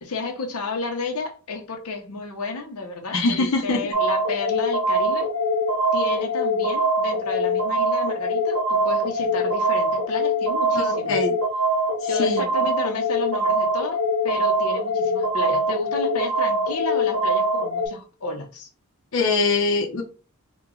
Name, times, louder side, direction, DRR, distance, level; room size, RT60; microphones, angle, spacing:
voice 1, 0.0-5.3 5.9-11.2 12.1-18.7, left 3 dB, 90° left, 0.8 m, -32 dB
voice 2, 3.1-3.9 10.7-11.3 12.0-12.4 19.1-20.0, left 3 dB, 60° left, 0.6 m, -23 dB
sound 1, 3.9-17.9, equal, 70° right, 1.1 m, -23 dB
2.9 x 2.3 x 3.7 m
head